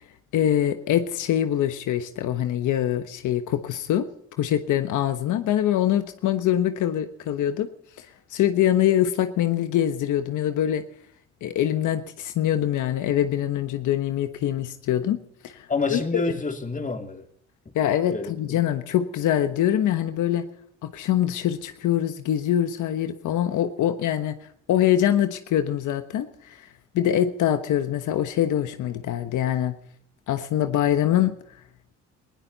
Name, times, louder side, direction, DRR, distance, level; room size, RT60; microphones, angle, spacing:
voice 1, 0.3-4.1 4.4-7.7 8.0-10.8 11.4-15.2 15.4-16.2 17.7-20.4 20.8-24.4 24.7-26.7 26.9-29.7 30.3-31.3, left 11 dB, 80° left, 1.3 m, -24 dB
voice 2, 15.7-17.2 18.1-18.6, left 3 dB, 25° left, 2.9 m, -28 dB
20.0 x 17.0 x 4.2 m
cardioid pair, 90°, 30 cm